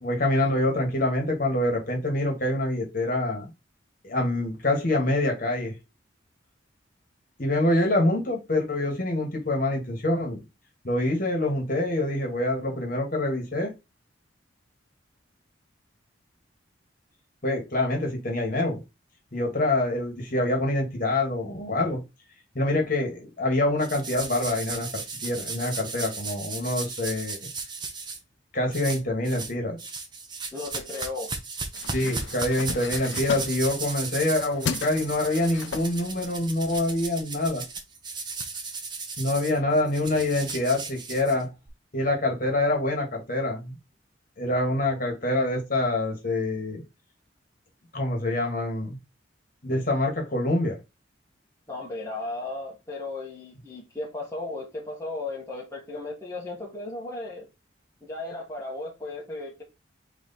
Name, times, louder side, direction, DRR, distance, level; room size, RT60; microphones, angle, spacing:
voice 1, 0.0-3.5 4.0-5.8 7.4-10.4 10.8-13.7 17.4-18.8 19.3-22.0 22.5-27.4 28.5-29.8 31.9-37.6 39.2-41.5 41.9-43.7 44.4-46.8 47.9-49.0 49.6-50.8, left 1 dB, 45° left, 1.5 m, -26 dB
sound 1, 23.8-28.2 28.7-29.5 29.8-41.7, right 4 dB, 25° right, 0.8 m, -36 dB
voice 2, 30.5-31.3 51.7-57.5 58.0-59.6, left 2 dB, 15° left, 1.2 m, -35 dB
sound 2, 31.7-36.9, left 6 dB, 75° left, 0.4 m, -37 dB
4.0 x 3.1 x 4.0 m
head